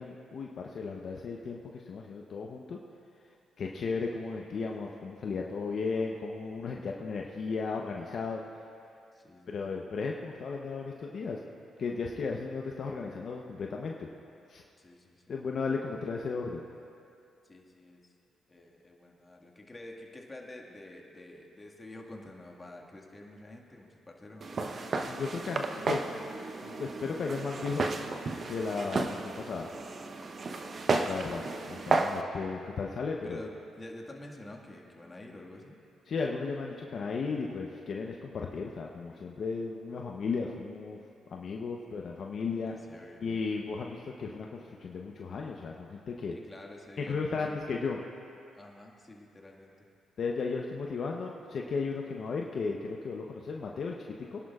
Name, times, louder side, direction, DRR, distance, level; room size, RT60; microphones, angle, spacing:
voice 1, 0.0-2.8 3.6-8.4 9.5-11.4 11.8-14.1 14.5-14.6 15.3-16.7 25.0-26.1 26.6-28.0 28.5-29.7 31.1-33.4 36.1-41.0 41.3-42.7 43.2-46.3 47.0-48.0 50.2-54.4, left 4 dB, 60° left, 0 dB, 0.8 m, -35 dB
voice 2, 9.1-9.8 14.8-15.4 17.4-18.1 18.5-24.6 30.5-30.9 33.2-35.8 42.7-43.3 46.3-47.5 48.5-49.9, left 1 dB, 25° left, -1 dB, 1.8 m, -49 dB
Walk footsteps, 24.4-32.2, right 3 dB, 50° right, 0.8 m, -33 dB
24.0 x 11.0 x 2.4 m, 2.6 s
supercardioid pair, 60°, 0 cm